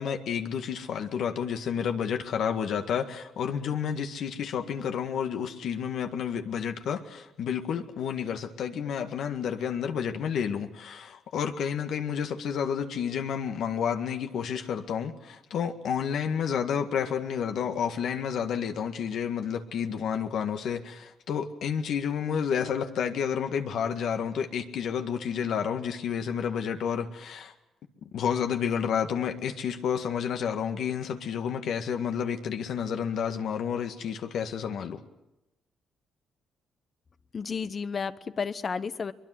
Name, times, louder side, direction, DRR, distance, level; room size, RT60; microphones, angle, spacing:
voice 1, 0.0-27.5 28.0-35.0, left 7 dB, 70° left, 1.8 m, -30 dB
voice 2, 37.3-39.1, left 5 dB, 40° left, 1.0 m, -32 dB
22.5 x 22.0 x 7.8 m
cardioid pair, 90°, 0 cm